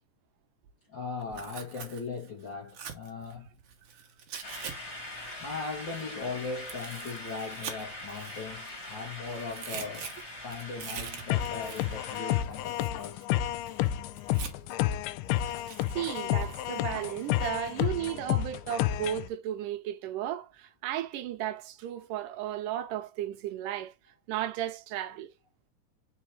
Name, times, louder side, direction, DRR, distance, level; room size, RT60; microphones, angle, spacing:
voice 1, 0.9-3.5 5.4-10.1 10.4-13.2, left 4 dB, 55° left, 1.3 m, -39 dB
Tearing, 1.2-4.7 5.0-9.0 9.3-14.8 15.3-17.8, right 7 dB, 65° right, 1.4 m, -45 dB
sound 1, 4.4-12.4, left 1 dB, 25° left, 2.1 m, -43 dB
sound 2, 11.3-19.3, left 13 dB, 85° left, 2.1 m, -30 dB
voice 2, 15.9-23.9 24.3-25.3, right 12 dB, 80° right, 2.2 m, -34 dB
4.6 x 4.5 x 4.6 m
omnidirectional pair, 3.9 m